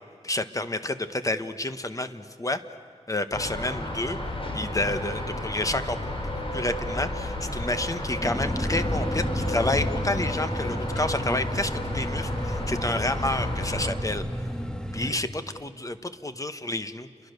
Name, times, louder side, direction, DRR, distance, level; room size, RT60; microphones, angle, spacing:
voice 1, 0.2-2.6 3.1-4.2 4.5-14.2 14.9-17.1, left 2 dB, 25° left, 10 dB, 1.2 m, -30 dB
sound 1, 3.3-13.9, left 1 dB, 45° left, 4.0 m, -32 dB
sound 2, 8.2-15.1, equal, 5° left, 1.5 m, -31 dB
30.0 x 23.0 x 6.7 m, 2.5 s
wide cardioid pair, 95°, 13 cm